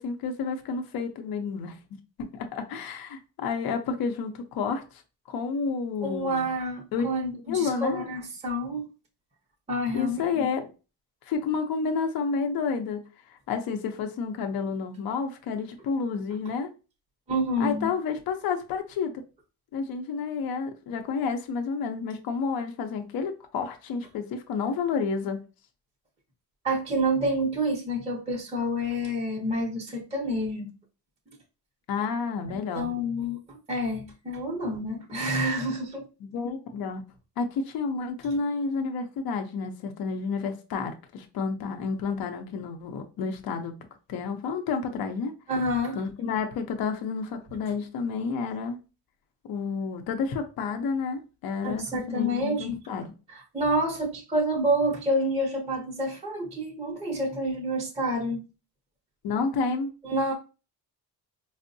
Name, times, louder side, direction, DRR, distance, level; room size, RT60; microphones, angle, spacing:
voice 1, 0.0-1.8 2.2-5.0 5.3-6.5 6.9-7.1 7.5-8.1 9.9-10.6 11.2-16.7 17.6-19.1 19.7-25.4 31.9-32.9 36.2-37.0 37.4-43.7 44.1-45.3 45.9-48.8 49.5-53.1 59.2-59.9, left 5 dB, 65° left, 0.6 m, -30 dB
voice 2, 6.0-8.8 9.7-10.5 17.3-17.9 26.6-30.7 32.5-36.1 45.5-46.0 51.6-52.7 53.3-58.4 60.0-60.3, equal, 15° right, 0.7 m, -28 dB
4.4 x 2.0 x 2.6 m
cardioid pair, 115°, 39 cm